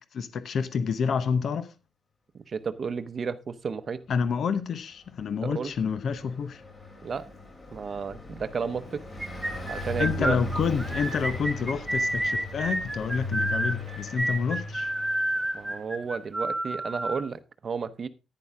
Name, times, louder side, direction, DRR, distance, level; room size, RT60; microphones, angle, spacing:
voice 1, 0.1-1.7 4.1-6.6 10.0-14.9, left 6 dB, 55° left, 0.9 m, -28 dB
voice 2, 2.5-4.0 5.4-5.7 7.0-7.2 7.7-9.0 9.7-10.4 15.5-18.1, right 5 dB, 35° right, 0.8 m, -32 dB
Car passing by, 5.1-16.1, left 2 dB, 30° left, 3.3 m, -38 dB
sound 1, 9.2-17.2, right 1 dB, 5° right, 2.3 m, -29 dB
10.5 x 9.9 x 3.6 m
wide cardioid pair, 175°, 0 cm